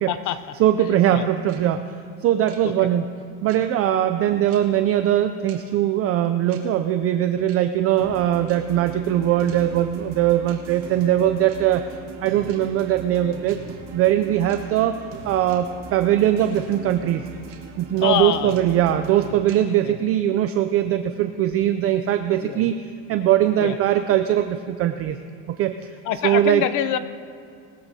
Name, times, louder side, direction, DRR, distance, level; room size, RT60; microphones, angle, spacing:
voice 1, 0.1-0.4 0.8-1.2 2.6-2.7 4.3-4.4 18.0-18.6 19.8-20.0 22.4-22.7 23.6-23.8 26.0-27.0, left 10 dB, 50° left, 11 dB, 0.7 m, -25 dB
voice 2, 0.6-1.8 2.2-3.0 3.4-11.8 12.2-13.6 13.9-17.2 17.8-22.8 23.1-25.2 25.5-25.7 26.2-26.6, right 11 dB, 40° right, 8 dB, 0.4 m, -21 dB
sound 1, 1.5-1.6 2.5-2.6 3.5-3.6 4.5-4.6 5.5-5.6 6.5-6.6 7.5-7.6 8.5-8.6 9.5-9.6 10.5-10.6 11.5-11.6 12.5-12.6 13.5-13.6 14.5-14.6 15.5-15.6 16.5-16.6 17.5-17.6 18.5-18.6 19.5-19.6, right 11 dB, 65° right, 2.3 m, -47 dB
sound 2, 8.0-19.4, right 4 dB, 90° right, 1.7 m, -40 dB
20.0 x 14.0 x 2.8 m, 2.3 s
cardioid pair, 145°, 39 cm